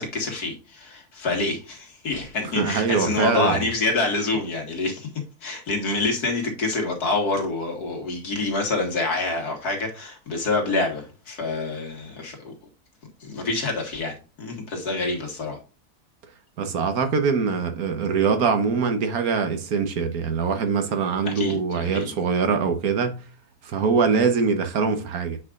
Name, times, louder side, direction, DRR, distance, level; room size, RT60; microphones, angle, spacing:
voice 1, 0.0-5.1 5.4-12.5 13.2-15.6 21.2-22.1, left 3 dB, 80° left, 2.4 m, -27 dB
voice 2, 2.5-3.6 16.6-23.2 23.6-25.4, right 5 dB, 70° right, 1.5 m, -23 dB
8.6 x 4.8 x 2.5 m
omnidirectional pair, 1.6 m